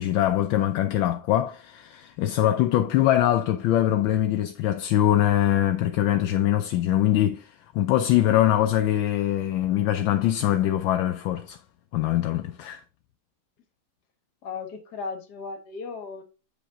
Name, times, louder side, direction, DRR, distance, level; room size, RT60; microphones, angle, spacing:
voice 1, 0.0-11.6 11.9-12.8, left 12 dB, 75° left, 1.2 m, -23 dB
voice 2, 14.4-16.2, left 4 dB, 50° left, 1.7 m, -36 dB
7.8 x 5.1 x 3.5 m
omnidirectional pair, 2.4 m